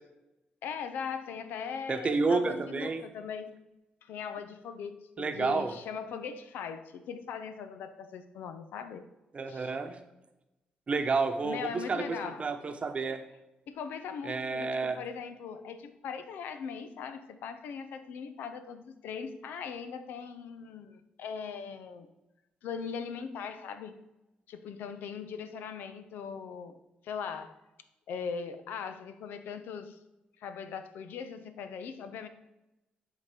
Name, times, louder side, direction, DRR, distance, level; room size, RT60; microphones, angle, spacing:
voice 1, 0.6-3.6 4.0-9.1 9.5-9.7 11.4-12.5 13.7-22.1 22.6-24.0 24.5-26.8 27.0-27.5 28.1-30.0 30.4-32.3, left 6 dB, 90° left, 10 dB, 0.6 m, -40 dB
voice 2, 1.9-3.0 5.2-5.7 9.3-10.0 10.9-12.0 12.4-13.2 14.2-15.0, right 4 dB, 40° right, 6 dB, 0.9 m, -30 dB
10.5 x 3.9 x 5.0 m, 0.97 s
cardioid pair, 90°, 3 cm